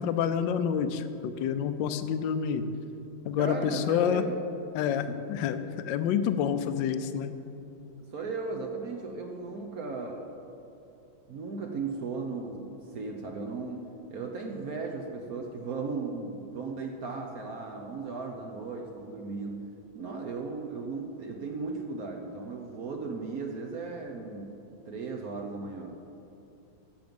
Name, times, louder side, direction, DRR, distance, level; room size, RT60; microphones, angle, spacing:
voice 1, 0.0-2.6 3.2-4.2 4.7-7.4, left 8 dB, 70° left, 10 dB, 1.2 m, -28 dB
voice 2, 3.4-4.4 4.9-5.2 8.1-10.3 11.3-24.6 24.9-26.0, right 4 dB, 60° right, 2 dB, 1.0 m, -36 dB
13.0 x 7.7 x 5.2 m, 2.8 s
omnidirectional pair, 2.4 m